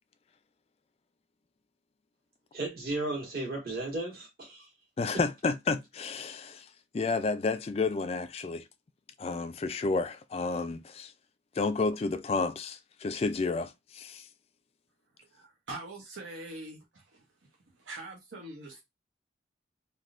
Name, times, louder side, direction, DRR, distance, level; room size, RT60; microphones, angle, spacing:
voice 1, 2.5-4.7, right 2 dB, 55° right, 1.6 m, -34 dB
voice 2, 5.0-6.7 6.9-8.6 9.2-11.1 11.6-14.3, left 4 dB, 30° left, 0.3 m, -31 dB
voice 3, 15.3-17.2 17.8-18.8, right 2 dB, 90° right, 0.9 m, -43 dB
3.4 x 2.6 x 2.4 m
head